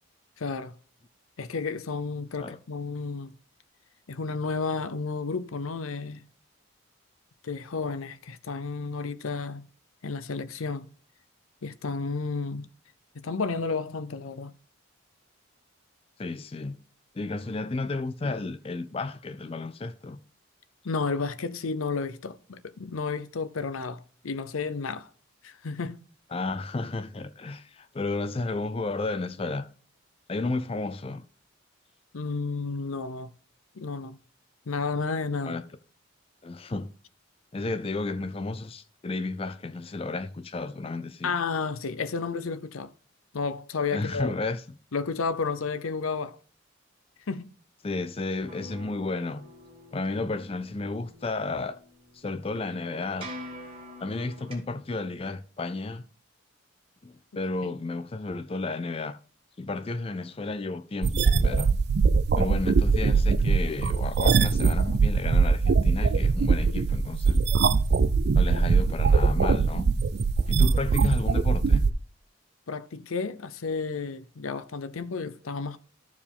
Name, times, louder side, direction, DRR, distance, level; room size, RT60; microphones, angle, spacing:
voice 1, 0.4-0.8 1.4-3.3 4.1-6.2 7.4-9.7 10.0-10.9 11.6-12.7 13.1-14.5 20.8-25.1 25.4-26.0 32.1-33.3 33.7-34.2 34.7-35.6 41.2-42.9 43.3-44.3 44.9-46.4 47.3-47.5 50.2-50.3 57.6-57.7 70.5-70.7 72.7-75.8, left 4 dB, 80° left, 0.7 m, -32 dB
voice 2, 16.2-16.8 17.1-20.2 26.3-29.7 30.3-31.2 35.4-35.6 36.4-36.9 37.5-41.3 43.9-44.6 47.8-49.4 49.9-51.8 52.1-53.3 54.0-56.0 57.0-59.2 59.6-61.7 62.3-67.4 68.3-69.9 70.5-71.9, left 3 dB, 25° left, 0.4 m, -32 dB
sound 1, 48.5-54.5, equal, 25° right, 2.1 m, -45 dB
sound 2, 61.0-71.9, right 4 dB, 50° right, 0.4 m, -22 dB
14.0 x 4.7 x 3.5 m
head